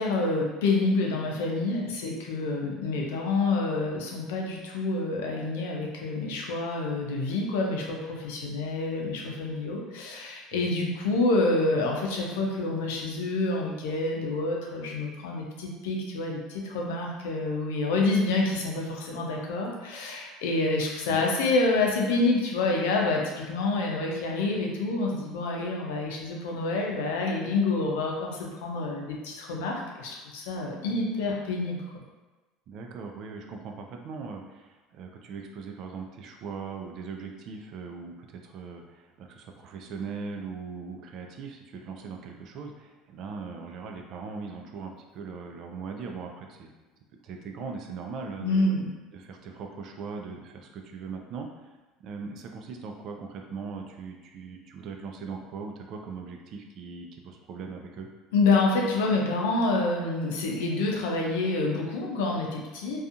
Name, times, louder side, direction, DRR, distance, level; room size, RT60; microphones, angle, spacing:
voice 1, 0.0-32.0 48.4-48.9 58.3-63.0, left 3 dB, 85° left, 0 dB, 0.5 m, -27 dB
voice 2, 32.7-46.7 47.2-48.7 49.1-51.7 52.0-58.1, right 5 dB, 55° right, 3 dB, 0.4 m, -40 dB
2.6 x 2.3 x 2.5 m, 1.2 s
supercardioid pair, 100°, 0 cm